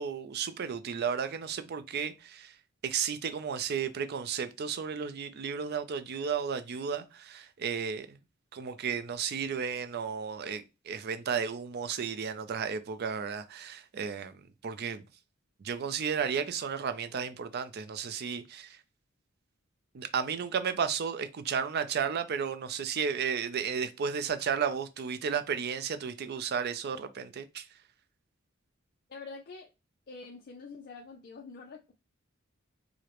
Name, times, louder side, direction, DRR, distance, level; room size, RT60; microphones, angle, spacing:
voice 1, 0.0-2.6 2.8-8.2 8.5-15.0 15.6-18.8 19.9-27.8, right 6 dB, 50° right, 0.4 m, -33 dB
voice 2, 29.1-29.7 30.1-31.9, left 4 dB, 45° left, 0.5 m, -46 dB
4.8 x 2.0 x 2.9 m
head